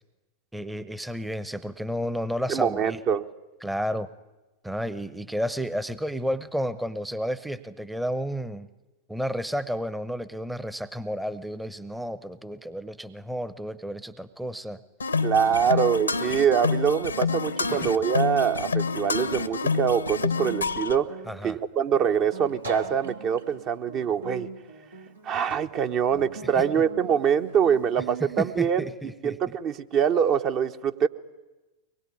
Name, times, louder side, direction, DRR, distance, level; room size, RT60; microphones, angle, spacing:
voice 1, 0.5-3.0 3.6-4.1 4.6-8.7 9.1-14.8 15.7-15.8 17.7-17.9 21.3-21.6 26.6-26.7 28.4-29.6, equal, 5° right, 15 dB, 0.9 m, -32 dB
voice 2, 2.5-3.3 15.2-21.2 21.4-24.5 25.2-28.9 29.2-31.1, right 8 dB, 35° right, 8 dB, 1.0 m, -24 dB
sound 1, 15.0-21.0, left 4 dB, 75° left, 1.0 m, -27 dB
Guitar, 19.2-28.6, right 3 dB, 80° right, 2.8 m, -41 dB
23.5 x 21.0 x 9.7 m, 1.1 s
figure-of-eight pair, 90°, 0 cm